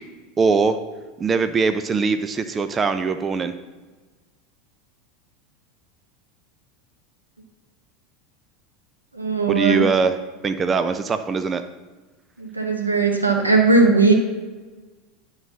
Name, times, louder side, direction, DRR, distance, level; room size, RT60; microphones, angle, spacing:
voice 1, 0.4-0.8 1.2-3.5 9.5-10.2 10.4-11.6, right 4 dB, 25° right, 10 dB, 0.5 m, -21 dB
voice 2, 9.1-9.8 12.4-14.1, right 3 dB, 85° right, 1 dB, 1.4 m, -18 dB
11.0 x 4.0 x 6.2 m, 1.3 s
figure-of-eight pair, 80°, 0 cm